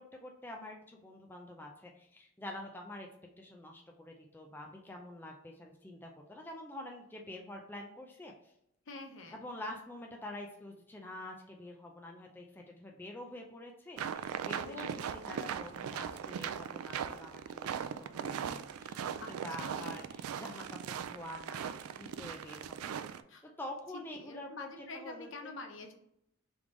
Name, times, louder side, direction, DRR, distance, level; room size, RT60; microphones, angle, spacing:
voice 1, 0.0-3.1 3.4-8.5 9.3-23.0 23.4-24.7 24.9-25.5, left 1 dB, 10° left, 0 dB, 0.4 m, -47 dB
voice 2, 8.9-9.4 14.5-15.2 19.2-20.1 23.3-23.5 24.1-25.9, left 3 dB, 60° left, 4 dB, 0.7 m, -47 dB
sound 1, 14.0-23.2, right 8 dB, 90° right, 0.3 m, -39 dB
3.4 x 3.4 x 3.7 m, 0.75 s
head